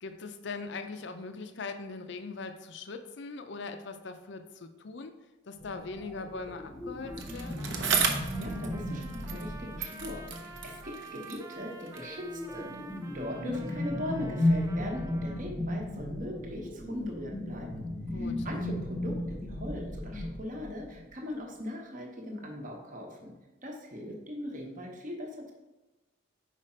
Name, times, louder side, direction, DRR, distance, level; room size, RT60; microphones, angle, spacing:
voice 1, 0.0-5.1 5.5-7.7 18.1-18.5, left 4 dB, 60° left, 8 dB, 0.5 m, -41 dB
sound 1, 5.6-10.8 11.7-21.0, left 1 dB, 15° left, 0.8 m, -35 dB
Trumpet, 7.0-15.4, right 3 dB, 15° right, 0.3 m, -49 dB
Bicycle, 7.2-9.5 9.8-12.2 12.9-13.0, right 6 dB, 65° right, 0.7 m, -34 dB
voice 2, 8.4-12.7 13.1-17.8 18.1-23.3 23.6-25.5, left 1 dB, 40° right, 1 dB, 1.0 m, -40 dB
5.0 x 4.9 x 4.3 m, 1.1 s
head